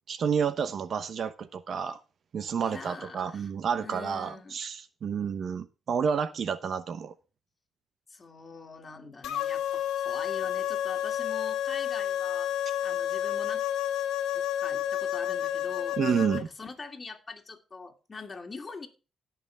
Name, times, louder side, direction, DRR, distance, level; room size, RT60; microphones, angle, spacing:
voice 1, 0.1-2.0 2.3-7.1 16.0-16.5, right 7 dB, 55° right, 0.9 m, -30 dB
voice 2, 2.6-3.5 3.8-4.6 8.1-12.5 12.8-13.7 14.3-16.0 16.4-18.9, left 4 dB, 30° left, 2.5 m, -43 dB
sound 1, 9.2-16.4, left 11 dB, 85° left, 1.4 m, -30 dB
17.5 x 6.0 x 3.4 m
cardioid pair, 90°, 0 cm